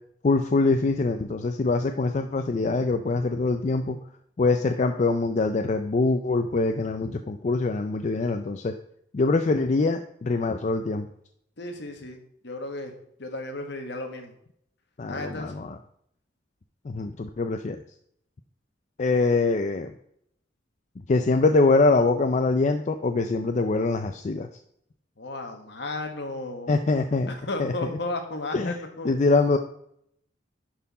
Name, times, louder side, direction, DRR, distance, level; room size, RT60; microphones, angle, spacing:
voice 1, 0.2-4.0 4.4-8.7 9.1-11.1 15.0-15.8 16.8-17.8 19.0-19.9 21.1-24.5 26.7-27.3 27.6-27.9 28.5-28.7 29.0-29.6, left 3 dB, 40° left, 7 dB, 0.4 m, -24 dB
voice 2, 11.6-12.9 13.2-14.3 15.1-15.6 25.2-26.8 27.3-29.1, left 2 dB, 65° left, 4 dB, 1.3 m, -34 dB
11.0 x 4.3 x 4.1 m, 0.71 s
head